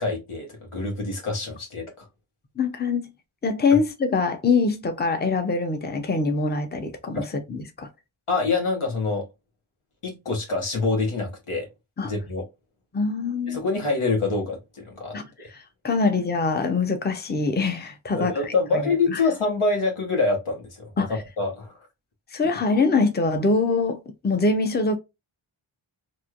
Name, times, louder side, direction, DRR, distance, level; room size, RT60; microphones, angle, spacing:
voice 1, 0.0-2.1 3.7-3.8 8.3-9.3 10.0-11.7 12.0-12.4 13.5-15.5 18.1-21.1 21.4-21.7, left 3 dB, 85° left, 1.2 m, -26 dB
voice 2, 2.6-3.1 3.4-7.2 7.5-7.9 12.0-12.1 12.9-13.6 15.1-15.3 15.5-18.8 19.1-19.2 21.0-21.2 22.3-25.0, left 4 dB, 20° left, 0.6 m, -24 dB
3.0 x 2.6 x 2.4 m
wide cardioid pair, 60°, 49 cm